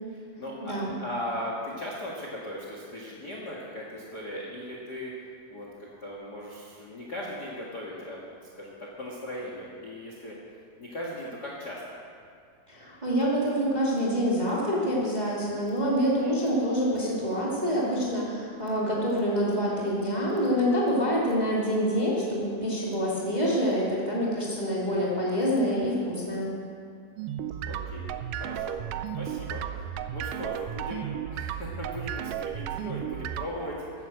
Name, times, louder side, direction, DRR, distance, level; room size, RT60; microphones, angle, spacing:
voice 1, 0.1-0.7 1.0-5.1 5.5-8.3 8.6-10.4 10.8-11.8 16.0-16.3 27.7-28.1 28.4-28.8 29.2-34.1, left 1 dB, 40° left, -3 dB, 1.7 m, -38 dB
voice 2, 0.6-1.0 12.7-26.5, equal, 15° right, -6 dB, 2.2 m, -26 dB
sound 1, 27.2-33.5, right 10 dB, 85° right, 1.9 m, -34 dB
13.5 x 11.5 x 7.7 m, 2.3 s
omnidirectional pair, 4.5 m